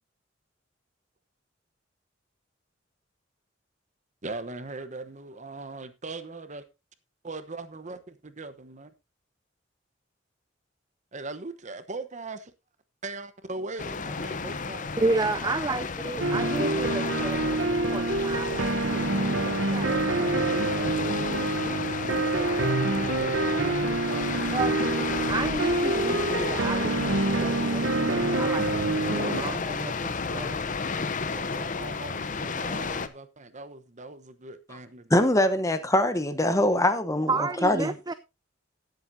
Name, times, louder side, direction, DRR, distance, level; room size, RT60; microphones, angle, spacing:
voice 1, 4.2-6.6 7.2-8.9 11.1-12.4 13.0-15.1 17.4-17.7 20.1-20.6 21.5-24.6 28.5-29.7 31.3-35.0, right 3 dB, 40° right, 1.0 m, -40 dB
sound 1, 13.8-33.1, left 4 dB, 45° left, 0.8 m, -32 dB
voice 2, 15.0-21.1 24.5-30.6 37.3-38.1, right 3 dB, 20° right, 0.4 m, -32 dB
sound 2, 16.2-29.4, right 2 dB, 70° right, 0.9 m, -27 dB
voice 3, 35.1-37.9, left 1 dB, 15° left, 1.0 m, -23 dB
17.5 x 7.9 x 2.7 m
head